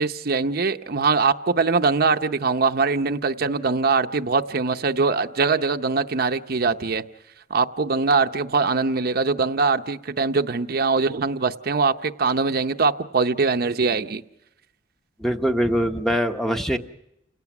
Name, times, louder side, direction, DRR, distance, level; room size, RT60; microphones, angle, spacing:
voice 1, 0.0-7.0 7.5-14.2, right 4 dB, 55° right, 0.7 m, -22 dB
voice 2, 15.2-16.8, equal, ahead, 0.9 m, -23 dB
29.5 x 18.0 x 6.0 m
head